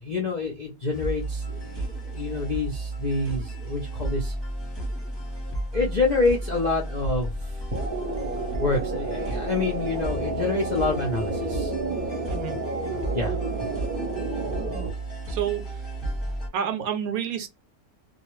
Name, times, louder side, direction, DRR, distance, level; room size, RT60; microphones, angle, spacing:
voice 1, 0.0-4.3 5.7-7.3 8.6-11.7 13.1-13.4, left 3 dB, 55° left, 0.5 m, -27 dB
sound 1, 0.9-16.5, right 1 dB, 20° left, 0.9 m, -33 dB
sound 2, 7.7-14.9, right 4 dB, 40° right, 0.7 m, -31 dB
voice 2, 15.3-15.6 16.5-17.5, right 9 dB, 70° right, 1.0 m, -28 dB
2.4 x 2.2 x 3.0 m
omnidirectional pair, 1.6 m